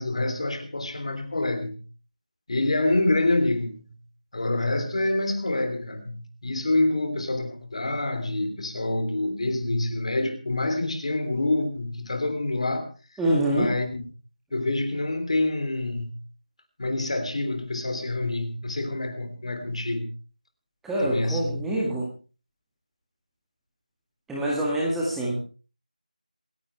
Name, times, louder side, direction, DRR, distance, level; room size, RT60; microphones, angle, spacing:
voice 1, 0.0-1.8 2.5-3.9 4.3-12.9 13.5-14.0 14.5-16.1 16.8-20.1 21.0-21.6, left 2 dB, 45° left, 8 dB, 3.3 m, -27 dB
voice 2, 13.2-13.7 20.8-22.1 24.3-25.4, right 1 dB, 5° right, -5 dB, 1.9 m, -25 dB
27.0 x 11.0 x 3.3 m, 0.35 s
figure-of-eight pair, 170°, 4 cm